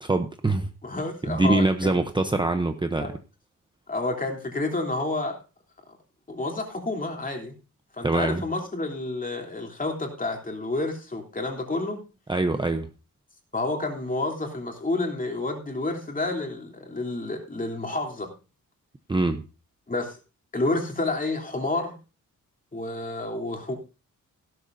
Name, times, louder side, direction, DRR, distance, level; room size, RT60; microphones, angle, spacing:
voice 1, 0.0-0.7 1.3-3.1 8.0-8.4 12.3-12.9 19.1-19.4, right 2 dB, 15° right, 7 dB, 0.8 m, -24 dB
voice 2, 0.8-2.0 3.0-3.1 3.9-5.4 6.3-7.6 7.9-12.0 13.5-18.3 19.9-20.2 20.5-22.0 22.7-23.7, left 2 dB, 25° left, 3 dB, 3.4 m, -29 dB
16.0 x 12.5 x 2.7 m, 0.32 s
wide cardioid pair, 155°, 32 cm